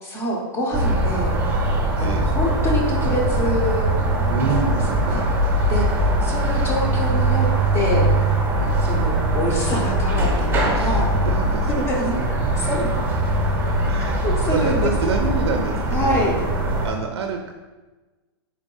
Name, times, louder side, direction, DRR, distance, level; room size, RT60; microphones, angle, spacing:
voice 1, 0.0-1.4 2.0-4.0 4.5-5.2 5.7-5.9 6.2-7.5 7.7-8.1 8.8-11.1 11.7-12.1 12.6-13.0 14.0-15.3 15.9-16.3, equal, 20° left, -2 dB, 0.7 m, -26 dB
sound 1, 0.7-16.9, right 1 dB, 20° right, 0.8 m, -21 dB
voice 2, 4.3-5.4 7.8-8.3 8.6-8.8 10.6-11.8 13.9-14.2 14.5-16.3 16.8-17.5, right 4 dB, 75° right, 3 dB, 0.5 m, -28 dB
3.8 x 2.5 x 3.8 m, 1.2 s
hypercardioid pair, 145°, 13 cm